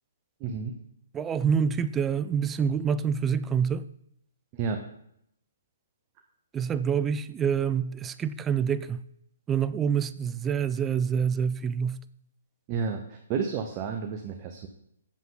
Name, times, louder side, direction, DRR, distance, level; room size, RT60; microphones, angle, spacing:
voice 1, 0.4-0.8 4.5-4.8 12.7-14.7, right 5 dB, 30° right, 0.8 m, -31 dB
voice 2, 1.1-3.8 6.5-9.0 9.5-12.0, right 7 dB, 15° right, 0.3 m, -27 dB
8.4 x 7.2 x 3.8 m
hypercardioid pair, 135°, 0 cm